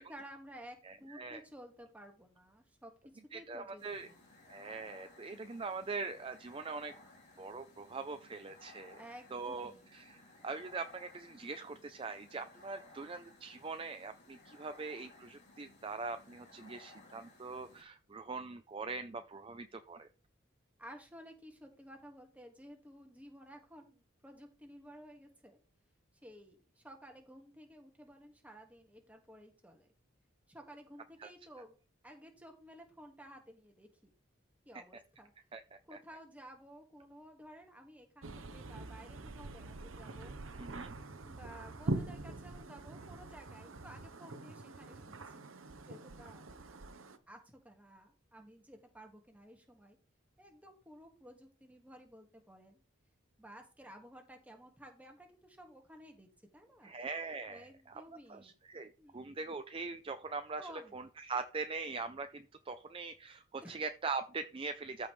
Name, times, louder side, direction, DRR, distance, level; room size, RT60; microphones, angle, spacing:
voice 1, 0.1-2.9 3.3-4.3 9.0-10.1 20.8-25.6 26.2-29.9 30.5-31.7 32.0-34.1 34.7-35.3 35.9-40.4 41.2-45.5 45.9-46.5 47.3-50.0 50.4-52.8 53.4-56.9 57.5-58.5 59.0-59.4 60.6-61.0 63.6-63.7, equal, 5° right, 3 dB, 1.7 m, -54 dB
voice 2, 0.8-1.4 3.3-4.1 4.5-6.9 7.4-9.0 9.3-20.1 31.2-31.3 34.7-34.8 35.5-35.6 35.9-36.0 40.6-40.9 56.8-58.0 58.3-65.1, right 4 dB, 25° right, 9 dB, 0.5 m, -42 dB
sound 1, 3.8-17.8, left 2 dB, 55° left, 3.4 m, -59 dB
sound 2, 38.2-47.2, right 2 dB, 80° right, 0.9 m, -43 dB
13.5 x 5.4 x 3.2 m, 0.35 s
head